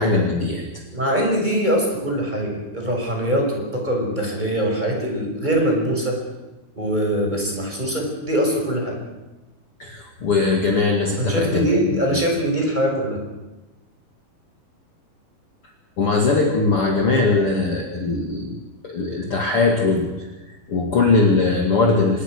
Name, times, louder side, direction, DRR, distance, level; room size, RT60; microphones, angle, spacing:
voice 1, 0.0-0.8 9.8-12.2 16.0-18.6 18.8-20.3 20.7-22.2, left 3 dB, 40° left, 1 dB, 2.8 m, -20 dB
voice 2, 0.9-6.2 6.8-9.0 11.2-13.2, right 1 dB, 10° right, 1 dB, 5.6 m, -22 dB
25.5 x 21.5 x 6.3 m, 1.1 s
omnidirectional pair, 4.3 m